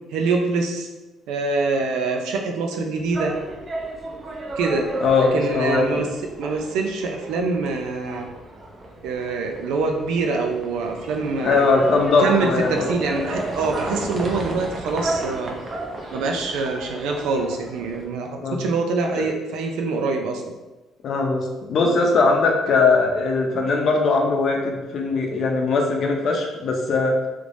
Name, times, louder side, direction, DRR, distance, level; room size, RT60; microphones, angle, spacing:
voice 1, 0.1-0.9 1.3-3.4 4.6-4.9 5.2-6.1 6.4-8.3 9.0-11.8 12.2-15.6 16.1-20.5, right 4 dB, 90° right, 3 dB, 0.5 m, -25 dB
sound 1, 2.9-18.1, right 2 dB, 30° right, 0.6 m, -33 dB
voice 2, 5.0-6.1 11.4-12.9 18.4-18.7 19.2-19.3 21.0-27.1, left 3 dB, 50° left, 1 dB, 0.6 m, -20 dB
3.3 x 3.2 x 2.6 m, 1.1 s
cardioid pair, 130°, 0 cm